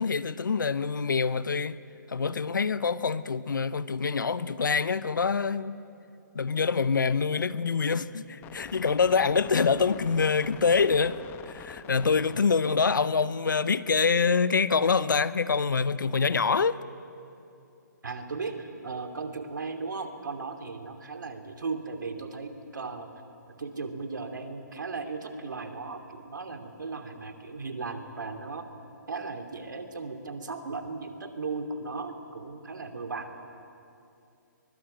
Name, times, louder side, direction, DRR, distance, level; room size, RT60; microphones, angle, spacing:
voice 1, 0.0-1.8 2.1-5.8 6.3-11.2 11.5-16.8, left 5 dB, 80° left, 0.9 m, -25 dB
sound 1, 8.4-12.4, left 9 dB, 20° left, 1.1 m, -45 dB
voice 2, 18.0-23.1 23.5-28.7 29.1-33.5, right 4 dB, 75° right, 2.8 m, -36 dB
24.0 x 22.0 x 7.9 m
hypercardioid pair, 140°, 10 cm